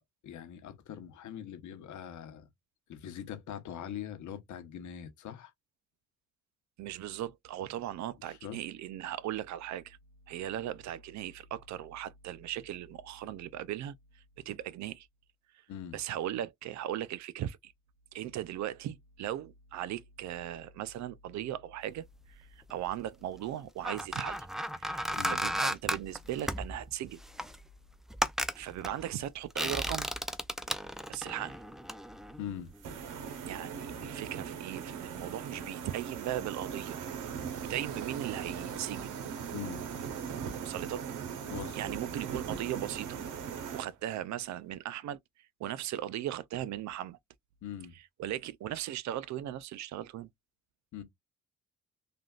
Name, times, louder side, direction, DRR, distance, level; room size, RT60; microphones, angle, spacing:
voice 1, 0.2-2.5 2.9-5.5 8.3-8.6 15.7-16.0 25.2-25.4 32.4-32.7 39.5-39.8 41.5-41.8 47.6-48.0 50.9-51.0, left 9 dB, 75° left, 0.9 m, -42 dB
voice 2, 6.8-10.0 10.3-15.1 15.9-17.7 18.1-24.5 24.8-27.2 28.5-30.1 31.1-31.6 33.5-37.0 37.5-39.2 40.6-41.1 41.7-43.2 43.7-45.2 45.6-47.2 48.2-50.3, right 12 dB, 65° right, 0.4 m, -38 dB
sound 1, 22.3-22.9 23.5-33.0 33.3-33.5, equal, ahead, 0.3 m, -35 dB
sound 2, 32.8-43.8, right 7 dB, 85° right, 0.9 m, -39 dB
3.4 x 2.5 x 2.3 m
cardioid pair, 90°, 30 cm